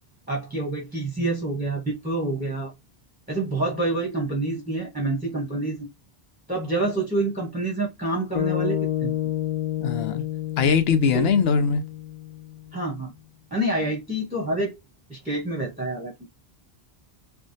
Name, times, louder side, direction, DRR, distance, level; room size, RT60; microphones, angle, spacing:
voice 1, 0.3-2.7 3.3-5.9 6.5-9.2 11.1-11.3 12.7-13.1 13.5-14.7 15.1-16.1, right 2 dB, 10° right, 0.8 m, -27 dB
sound 1, 8.3-12.7, left 13 dB, 55° left, 0.3 m, -29 dB
voice 2, 9.8-10.2 10.6-11.8, left 6 dB, 80° left, 0.8 m, -21 dB
3.4 x 2.1 x 2.6 m
omnidirectional pair, 1.0 m